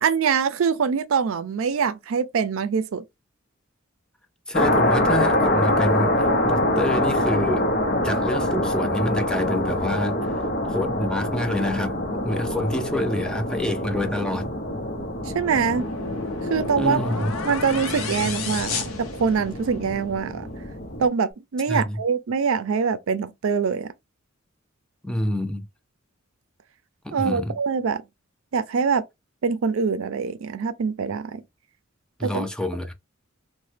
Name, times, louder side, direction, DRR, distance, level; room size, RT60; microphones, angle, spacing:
voice 1, 0.0-3.0 15.3-15.9 16.5-17.0 17.4-20.5 21.0-23.9 27.1-28.0 28.5-29.0 29.4-31.4 32.2-32.5, right 6 dB, 70° right, 0.4 m, -24 dB
sound 1, 4.5-21.1, left 1 dB, 50° left, 0.7 m, -25 dB
voice 2, 4.5-7.7 8.0-14.5 16.8-17.3 21.7-22.0 25.0-25.7 27.0-27.5 32.2-32.9, left 1 dB, 5° left, 0.4 m, -27 dB
sound 2, 15.2-19.8, left 4 dB, 90° left, 0.7 m, -31 dB
3.0 x 2.1 x 3.2 m
head